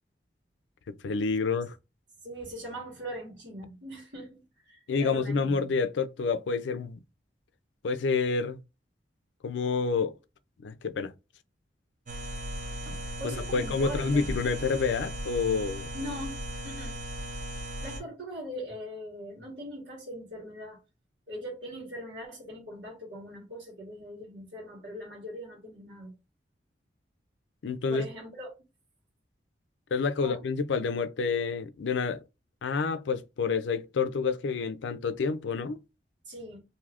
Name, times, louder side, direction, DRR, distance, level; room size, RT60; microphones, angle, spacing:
voice 1, 0.9-1.8 4.9-7.0 7.8-8.6 9.4-10.1 10.6-11.1 13.2-15.9 27.6-28.0 29.9-32.2 32.6-35.8, left 4 dB, 85° left, 0.4 m, -28 dB
voice 2, 2.2-5.6 13.2-14.3 15.9-17.0 17.8-20.8 21.3-26.1 27.9-28.5 30.2-30.4 36.2-36.6, equal, 80° right, 1.4 m, -41 dB
sound 1, 12.1-18.0, equal, 45° right, 0.7 m, -37 dB
2.6 x 2.4 x 3.4 m
head